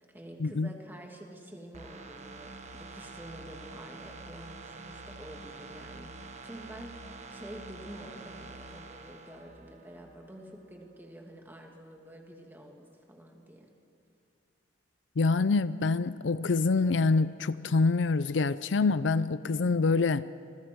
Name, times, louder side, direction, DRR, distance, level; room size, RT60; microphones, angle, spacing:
voice 1, 0.0-13.7, right 1 dB, 10° right, 2.6 m, -48 dB
sound 1, 1.7-10.4 10.8-10.9, right 3 dB, 40° right, 1.3 m, -47 dB
voice 2, 15.2-20.2, left 4 dB, 70° left, 0.5 m, -26 dB
28.0 x 21.0 x 4.7 m
head